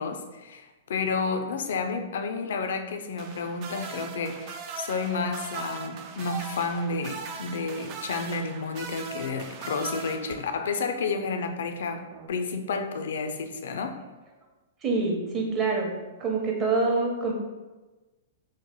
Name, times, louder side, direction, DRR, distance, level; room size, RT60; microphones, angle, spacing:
voice 1, 0.0-12.0 12.3-14.0, left 4 dB, 75° left, 7 dB, 0.4 m, -31 dB
sound 1, 3.2-10.8 12.1-12.3, right 5 dB, 45° right, 0.3 m, -39 dB
voice 2, 14.8-15.9 16.2-17.3, right 3 dB, 30° right, -1 dB, 0.8 m, -26 dB
3.1 x 2.1 x 3.8 m, 1.2 s
hypercardioid pair, 120°, 0 cm